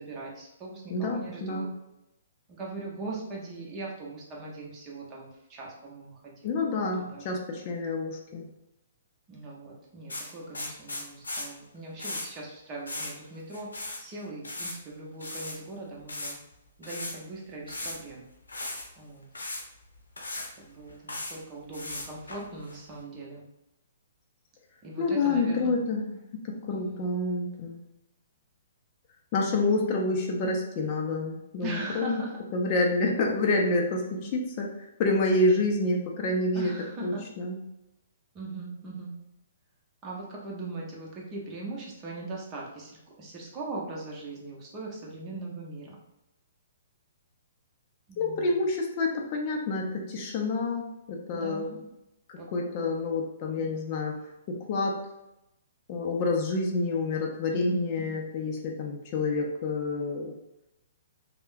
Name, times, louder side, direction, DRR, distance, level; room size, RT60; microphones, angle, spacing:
voice 1, 0.0-1.7 2.6-6.6 6.9-7.4 9.3-13.7 14.0-16.4 16.8-18.2 19.0-19.3 20.6-23.4 24.8-25.8 26.7-27.1 31.6-32.4 36.5-37.2 38.3-39.1 40.0-42.9 43.2-46.0 48.1-48.6 51.3-51.9 52.4-52.9 53.5-53.7 57.5-57.8 58.1-58.2, right 2 dB, 25° right, -3 dB, 0.8 m, -40 dB
voice 2, 0.9-1.7 6.4-8.5 25.0-26.2 26.4-27.8 29.3-32.2 32.5-36.7 37.0-37.6 48.2-51.8 52.3-54.1 54.5-55.0 55.9-60.4, left 2 dB, 40° left, 0 dB, 0.5 m, -28 dB
sound 1, 10.1-11.5 12.0-12.3 12.9-13.1 13.4-14.0 14.3-14.7 15.2-15.6 16.1-16.4 16.8-17.1 17.7-18.1 18.5-18.8 19.3-19.6 20.2-20.5 20.9-21.3 21.7-22.8, left 2 dB, 80° left, 0.7 m, -36 dB
3.4 x 2.1 x 2.5 m, 0.90 s
figure-of-eight pair, 125°, 0 cm